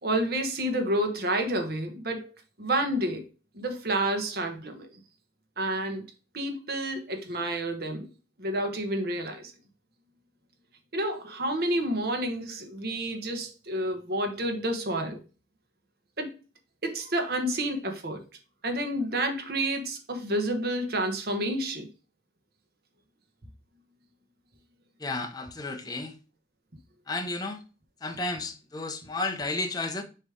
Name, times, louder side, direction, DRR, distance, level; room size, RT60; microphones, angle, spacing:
voice 1, 0.0-2.3 2.6-3.2 3.5-4.9 5.6-6.0 6.3-8.1 8.4-9.5 10.9-15.2 16.2-16.3 16.8-18.2 18.6-21.9, right 1 dB, 60° right, 1.3 m, -29 dB
voice 2, 25.0-26.2 27.1-27.6 28.0-30.0, left 2 dB, 20° left, 0.9 m, -32 dB
6.7 x 3.2 x 4.9 m
head